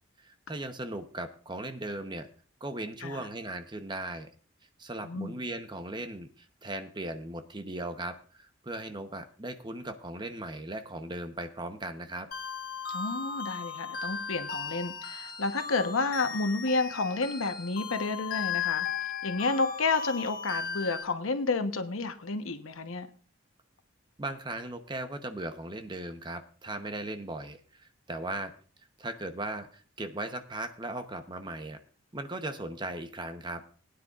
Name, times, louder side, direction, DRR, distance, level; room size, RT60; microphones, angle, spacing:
voice 1, 0.2-2.3 2.6-4.3 4.8-12.3 24.2-28.5 29.0-31.8 32.1-33.6, right 2 dB, 20° right, 0.8 m, -38 dB
voice 2, 5.0-5.4 12.9-18.9 19.2-23.1, left 3 dB, 85° left, 1.0 m, -30 dB
sound 1, 12.3-21.0, left 6 dB, 45° left, 1.2 m, -36 dB
19.5 x 9.6 x 2.4 m
head